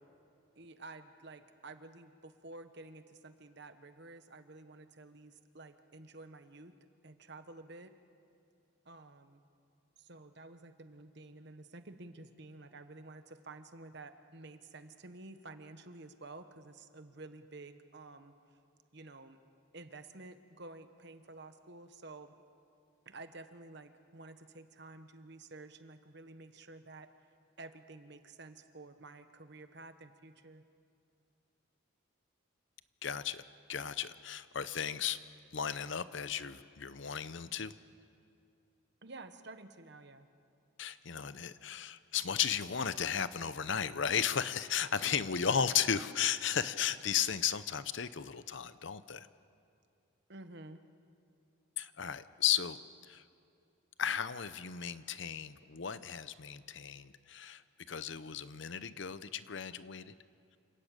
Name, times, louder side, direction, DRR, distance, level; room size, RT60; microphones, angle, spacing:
voice 1, 0.6-6.7 7.0-7.9 8.8-9.4 10.0-18.3 18.9-19.4 19.7-22.3 23.0-27.1 27.6-30.6 39.0-40.3 50.3-50.8, right 2 dB, 55° right, 9 dB, 1.2 m, -51 dB
voice 2, 33.0-33.4 33.7-35.2 35.5-37.7 40.8-49.3 51.8-52.8 53.1-53.2 54.0-57.6 57.9-60.1, left 8 dB, 60° left, 14 dB, 0.7 m, -35 dB
28.5 x 13.0 x 8.9 m, 2.6 s
head